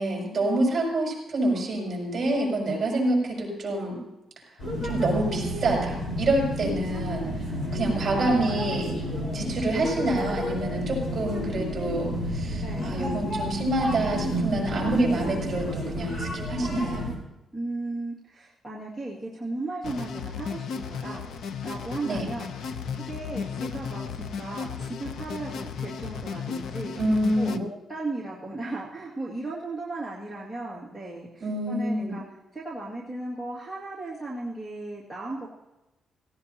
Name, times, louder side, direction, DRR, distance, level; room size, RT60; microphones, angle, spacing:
voice 1, 0.0-4.0 4.8-8.9 9.3-17.0 22.0-22.2 27.0-27.6 31.4-32.1, right 1 dB, 25° right, -2 dB, 6.5 m, -27 dB
sound 1, 4.6-17.2, equal, 40° left, 4.7 m, -31 dB
voice 2, 12.6-13.0 17.5-21.3 21.6-26.9 27.4-32.2 32.5-35.5, right 2 dB, 5° left, -5 dB, 2.2 m, -36 dB
sound 2, 19.8-27.6, left 6 dB, 70° left, 0.8 m, -35 dB
17.5 x 17.5 x 2.9 m, 0.97 s
cardioid pair, 165°, 0 cm